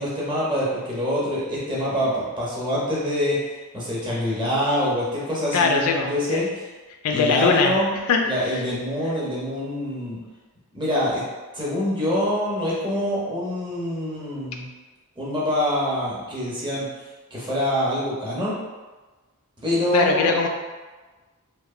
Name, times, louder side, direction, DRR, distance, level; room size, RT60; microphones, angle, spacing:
voice 1, 0.0-3.4 3.7-6.6 7.1-7.9 8.2-10.2 10.7-11.2 11.5-14.7 15.2-16.9 17.3-18.5 19.6-20.3, equal, 20° right, -7 dB, 0.7 m, -25 dB
voice 2, 5.5-6.4 7.0-7.7 8.1-8.6 19.9-20.5, left 5 dB, 70° left, 3 dB, 0.3 m, -21 dB
2.9 x 2.1 x 2.4 m, 1.3 s
head